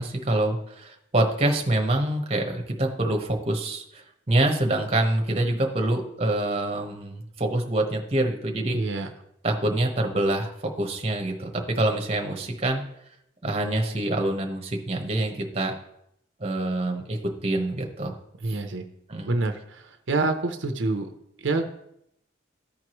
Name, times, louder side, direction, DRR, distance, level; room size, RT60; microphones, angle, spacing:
voice 1, 0.0-8.8 9.4-12.8 13.4-15.7 16.4-18.1 18.5-18.6 19.1-19.3, right 1 dB, 30° right, 2 dB, 1.0 m, -26 dB
voice 2, 8.7-9.1 11.8-11.9 18.4-18.9 19.2-21.1 21.4-21.7, right 3 dB, 80° right, 6 dB, 0.7 m, -27 dB
14.0 x 4.7 x 3.0 m, 0.77 s
head